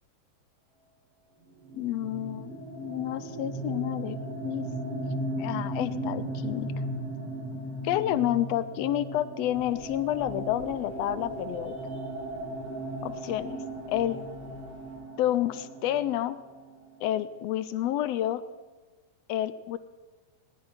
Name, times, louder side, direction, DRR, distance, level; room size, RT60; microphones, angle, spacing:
sound 1, 1.6-17.2, right 1 dB, 55° right, 3.3 m, -36 dB
voice 1, 1.7-4.2 4.4-5.1 5.4-6.7 7.8-11.7 13.0-13.6 13.9-14.2 15.2-16.4 17.0-18.4 19.3-19.8, left 12 dB, 75° left, 13 dB, 1.6 m, -29 dB
sound 2, 9.4-15.0, left 1 dB, 85° right, 8.4 m, -54 dB
18.5 x 11.5 x 5.8 m, 1.2 s
omnidirectional pair, 3.3 m